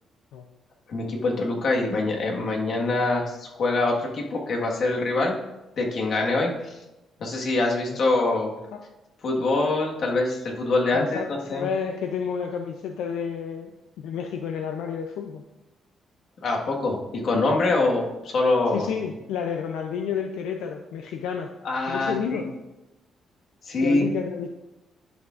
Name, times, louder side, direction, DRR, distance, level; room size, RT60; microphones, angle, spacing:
voice 1, 0.9-5.3 5.8-6.8 7.2-8.5 9.2-11.7 16.4-18.9 21.6-22.4 23.7-24.1, left 2 dB, 60° left, -1 dB, 1.5 m, -24 dB
voice 2, 10.9-13.7 14.0-15.4 18.7-21.5 21.9-22.5 23.8-24.5, left 7 dB, 90° left, 4 dB, 0.5 m, -30 dB
10.5 x 6.1 x 2.5 m, 0.98 s
cardioid pair, 90°, 0 cm